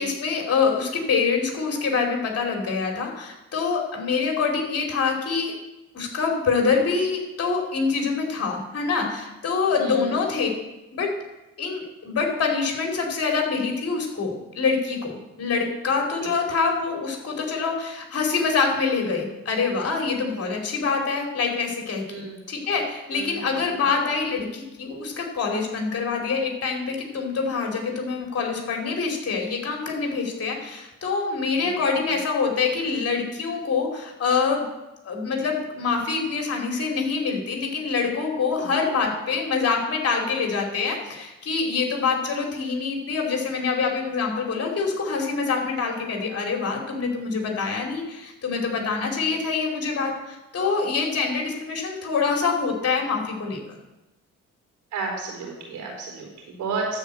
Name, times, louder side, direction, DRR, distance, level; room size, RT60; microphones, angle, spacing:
voice 1, 0.0-5.5 5.9-10.5 10.9-11.1 11.6-34.6 35.0-53.6, left 5 dB, 50° left, 1 dB, 2.8 m, -25 dB
voice 2, 9.6-10.2 16.2-16.3 22.1-22.4 23.1-23.5 31.6-31.7 38.6-38.7 54.9-57.0, right 4 dB, 85° right, 0 dB, 4.3 m, -32 dB
13.0 x 4.5 x 7.8 m, 1.0 s
cardioid pair, 90°, 30 cm